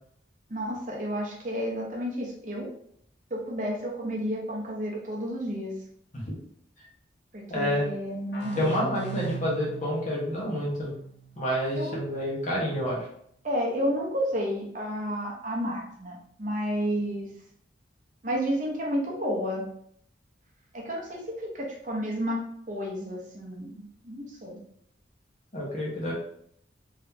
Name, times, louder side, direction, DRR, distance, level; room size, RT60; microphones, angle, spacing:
voice 1, 0.5-2.7 3.3-5.7 7.3-9.2 11.8-12.0 13.4-17.3 18.2-19.6 20.7-21.2 21.5-22.4 22.7-24.6, equal, 40° right, -2 dB, 0.8 m, -31 dB
voice 2, 7.5-7.9 8.6-10.9 11.4-13.1 25.5-26.1, equal, 40° left, -5 dB, 1.4 m, -28 dB
sound 1, 8.3-11.8, right 6 dB, 70° left, 0.9 m, -39 dB
3.6 x 3.3 x 2.8 m, 0.66 s
head